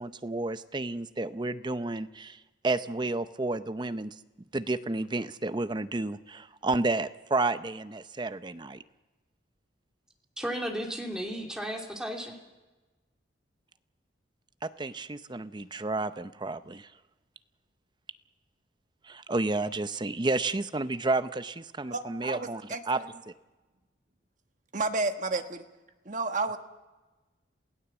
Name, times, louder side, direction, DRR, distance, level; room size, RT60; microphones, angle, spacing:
voice 1, 0.0-2.4 2.6-4.2 4.5-8.8 14.6-16.9 19.0-23.0, right 2 dB, 25° right, 12 dB, 0.6 m, -31 dB
voice 2, 10.4-12.4, equal, 5° right, 0 dB, 2.8 m, -34 dB
voice 3, 21.9-23.1 24.7-25.6 26.0-26.6, right 3 dB, 40° right, 6 dB, 1.3 m, -31 dB
28.0 x 17.0 x 7.2 m, 1.2 s
head